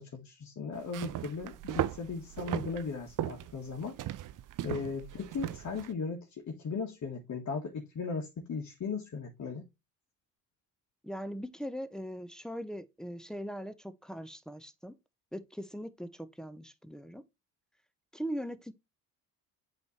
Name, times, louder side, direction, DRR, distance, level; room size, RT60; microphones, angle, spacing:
voice 1, 0.0-4.0 4.6-9.7, left 4 dB, 35° left, 1.6 m, -37 dB
sound 1, 0.8-5.9, right 12 dB, 40° right, 0.7 m, -37 dB
voice 2, 11.0-14.9 15.3-17.2 18.1-18.7, equal, ahead, 0.7 m, -40 dB
8.1 x 3.3 x 4.2 m
hypercardioid pair, 55°, 48 cm